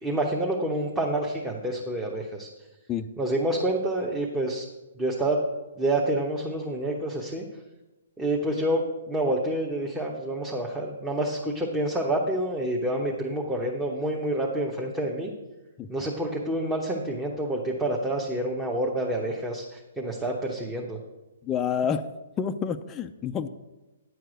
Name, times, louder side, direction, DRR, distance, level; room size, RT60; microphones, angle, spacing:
voice 1, 0.0-2.5 3.2-4.7 5.0-5.4 5.8-7.5 8.2-15.3 15.9-21.0, right 1 dB, 10° right, -2 dB, 1.0 m, -28 dB
voice 2, 21.4-22.1 22.4-23.5, left 7 dB, 20° left, 6 dB, 0.4 m, -28 dB
9.8 x 4.6 x 7.8 m, 1.1 s
hypercardioid pair, 145°, 0 cm